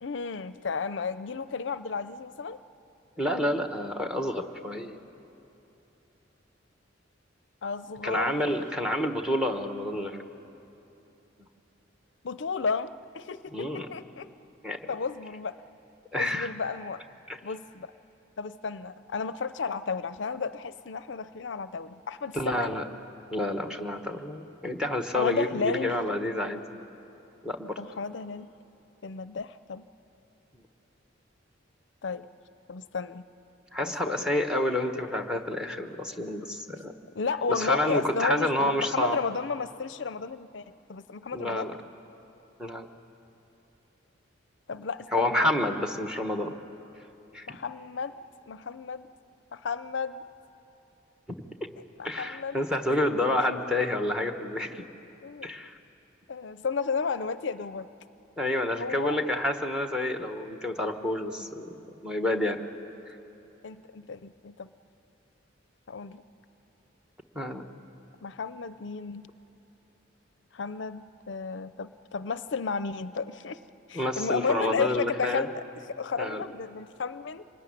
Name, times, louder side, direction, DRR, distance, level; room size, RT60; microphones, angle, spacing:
voice 1, 0.0-2.6 7.6-8.4 12.2-14.3 14.9-15.6 16.2-17.0 17.4-17.9 18.4-22.7 25.1-25.9 27.8-28.5 29.0-29.9 32.0-32.3 32.7-33.2 33.8-34.2 37.1-41.7 44.7-45.5 47.5-48.2 48.5-49.1 49.5-50.3 52.0-52.6 55.2-55.5 56.3-57.9 58.7-59.2 61.4-61.5 63.6-64.7 65.9-66.2 68.2-69.3 70.5-73.6 73.9-75.6 76.0-77.4, left 5 dB, 65° left, 13 dB, 0.5 m, -33 dB
voice 2, 3.2-5.0 8.0-10.2 13.5-13.9 14.6-14.8 16.1-16.5 17.3-17.4 22.3-22.8 23.3-26.6 27.4-27.8 33.7-36.9 37.5-39.2 41.3-41.8 42.6-42.9 45.1-46.5 47.3-47.6 51.3-51.4 52.0-54.8 55.4-55.8 58.4-61.7 62.0-62.6 63.1-63.2 67.3-67.6 73.9-75.5 76.2-76.4, left 1 dB, 5° right, 5 dB, 1.2 m, -29 dB
25.0 x 20.5 x 10.0 m, 2.9 s
head